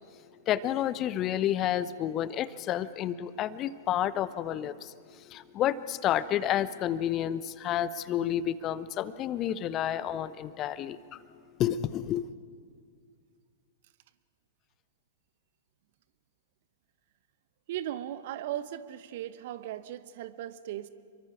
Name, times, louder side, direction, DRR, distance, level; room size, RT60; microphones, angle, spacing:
voice 1, 0.5-4.9 5.3-11.0 11.6-12.3, left 11 dB, 30° left, 16 dB, 0.8 m, -30 dB
voice 2, 17.7-20.9, right 12 dB, 50° right, 13 dB, 1.1 m, -37 dB
29.0 x 23.5 x 4.9 m, 2.2 s
figure-of-eight pair, 100°, 0 cm